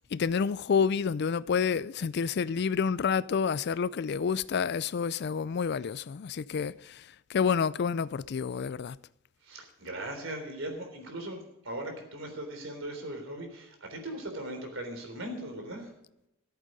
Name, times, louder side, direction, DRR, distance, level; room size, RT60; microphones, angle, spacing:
voice 1, 0.1-9.0, left 6 dB, 55° left, 0.4 m, -29 dB
voice 2, 9.4-15.9, right 1 dB, 75° right, 3.6 m, -39 dB
14.5 x 8.2 x 5.1 m
head